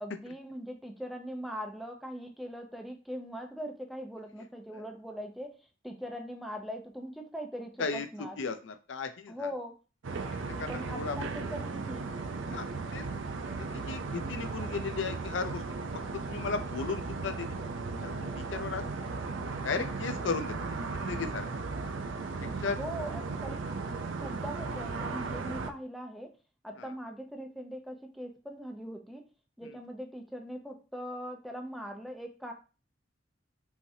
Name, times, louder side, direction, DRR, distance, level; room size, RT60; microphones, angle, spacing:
voice 1, 0.0-5.6 5.8-8.4 9.3-9.7 10.7-12.2 22.8-23.6 24.2-26.3 26.6-29.2 29.6-32.5, equal, ahead, 3 dB, 0.7 m, -41 dB
voice 2, 8.4-9.5 10.6-11.2 12.5-12.7 12.9-13.1 13.6-15.6 16.1-17.6 18.0-18.8 19.6-20.6 20.9-21.5 22.6-22.8 26.8-26.9 29.6-29.8, left 5 dB, 70° left, 9 dB, 0.5 m, -35 dB
sound 1, 10.0-25.7, right 4 dB, 85° right, 0.6 m, -36 dB
5.6 x 3.0 x 2.8 m, 0.33 s
head